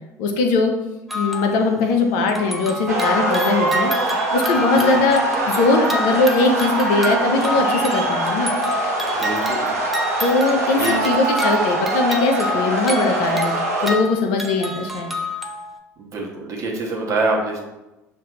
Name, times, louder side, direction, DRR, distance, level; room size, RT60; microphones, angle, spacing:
voice 1, 0.2-0.7 1.1-3.9 4.3-8.5 10.2-15.1, left 3 dB, 60° left, 4 dB, 0.6 m, -20 dB
sound 1, 1.1-1.9 2.3-15.8, left 1 dB, ahead, 0.5 m, -29 dB
sound 2, 2.9-13.9, right 2 dB, 85° right, 0.8 m, -23 dB
voice 2, 9.1-9.7 10.8-11.2 16.0-17.6, right 2 dB, 40° right, -1 dB, 1.1 m, -25 dB
6.5 x 2.6 x 2.5 m, 1.0 s
figure-of-eight pair, 65°, 8 cm